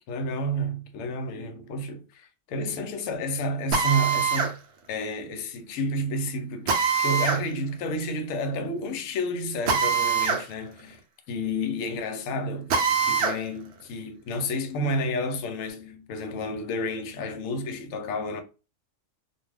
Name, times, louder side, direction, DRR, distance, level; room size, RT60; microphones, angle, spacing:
voice 1, 0.1-4.5 4.9-11.0 11.3-12.7 13.0-18.4, equal, 70° left, 0.9 m, -30 dB
Drill, 3.7-4.5 6.7-7.4 9.7-10.4 10.8-10.9 12.7-13.4, right 6 dB, 65° right, 0.7 m, -23 dB
2.4 x 2.2 x 3.3 m
omnidirectional pair, 1.6 m